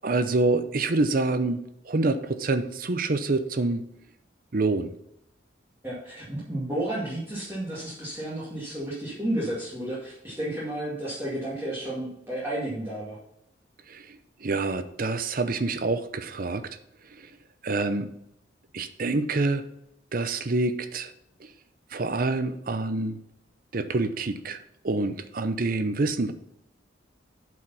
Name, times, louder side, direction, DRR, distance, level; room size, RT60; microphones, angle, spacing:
voice 1, 0.0-3.9 4.5-4.9 13.9-14.2 14.4-16.7 17.2-17.3 17.6-18.1 18.7-19.6 20.1-21.1 21.4-21.5 21.9-23.2 23.7-24.6 24.8-26.3, right 2 dB, 50° right, 10 dB, 0.7 m, -26 dB
voice 2, 5.8-13.2, right 1 dB, 10° right, -9 dB, 2.1 m, -32 dB
8.1 x 4.9 x 5.6 m, 0.78 s
head